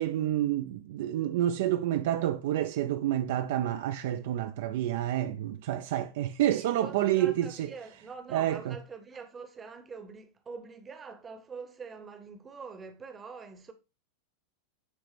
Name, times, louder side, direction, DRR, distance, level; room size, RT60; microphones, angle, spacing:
voice 1, 0.0-7.7 8.3-8.8, right 12 dB, 55° right, 0.3 m, -29 dB
voice 2, 6.5-13.7, right 5 dB, 20° right, 0.8 m, -45 dB
9.3 x 3.3 x 3.2 m
figure-of-eight pair, 90°, 0 cm